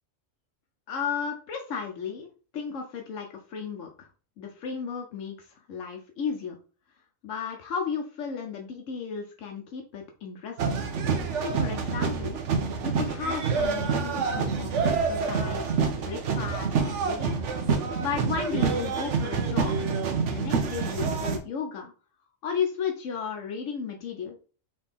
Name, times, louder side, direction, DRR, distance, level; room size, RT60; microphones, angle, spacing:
voice 1, 0.9-4.1 4.4-6.5 7.2-10.8 11.4-12.4 12.8-17.4 18.0-19.9 20.2-21.9 22.4-24.4, left 6 dB, 80° left, 2 dB, 1.1 m, -34 dB
sound 1, 10.6-21.4, right 5 dB, 70° right, 1.0 m, -27 dB
4.2 x 3.1 x 3.5 m, 0.38 s
omnidirectional pair, 1.3 m